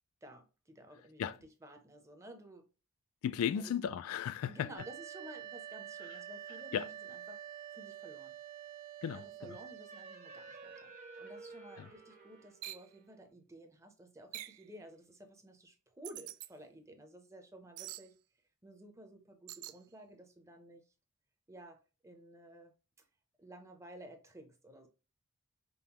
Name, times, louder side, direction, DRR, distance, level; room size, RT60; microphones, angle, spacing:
voice 1, 0.2-2.6 3.5-3.7 4.5-8.3 9.1-10.9 11.2-18.2 18.6-20.8 21.5-22.7 23.4-24.9, right 1 dB, 15° right, 0.6 m, -54 dB
voice 2, 3.2-4.7 6.7-6.9 9.0-9.2 11.8-11.9, left 8 dB, 75° left, 0.3 m, -34 dB
sound 1, 4.8-13.3, right 9 dB, 40° right, 0.9 m, -49 dB
sound 2, 12.6-12.9 14.3-14.6 16.0-16.5 17.8-18.1 19.5-19.8, right 15 dB, 75° right, 0.3 m, -45 dB
5.3 x 2.0 x 2.9 m
head